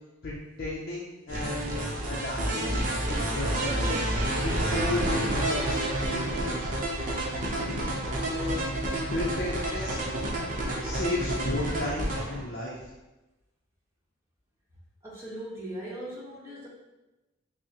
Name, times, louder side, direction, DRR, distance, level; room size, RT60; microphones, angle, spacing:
voice 1, 0.2-2.8 3.1-4.1 4.4-6.7 8.0-8.6 9.1-10.0 10.8-12.9, left 1 dB, 50° left, -4 dB, 0.6 m, -34 dB
sound 1, 1.3-12.4, right 1 dB, 45° right, 0.7 m, -29 dB
voice 2, 15.0-16.7, right 1 dB, 15° right, -7 dB, 1.0 m, -39 dB
6.0 x 2.1 x 2.8 m, 1.0 s
head